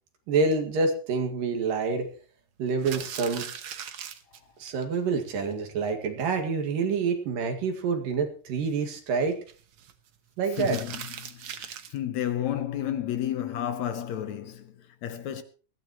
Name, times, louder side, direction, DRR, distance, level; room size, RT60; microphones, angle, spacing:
voice 1, 0.3-2.1 2.6-3.5 4.6-9.4 10.4-10.8, right 4 dB, 85° right, 3.7 m, -27 dB
sound 1, 2.7-4.8 5.2-5.3 5.5-5.6 5.9-6.0 6.4-6.7 8.7-9.9 10.5-12.0, right 8 dB, 65° right, 1.2 m, -40 dB
voice 2, 10.6-15.4, left 11 dB, 70° left, 2.0 m, -32 dB
20.5 x 15.0 x 3.1 m
omnidirectional pair, 3.8 m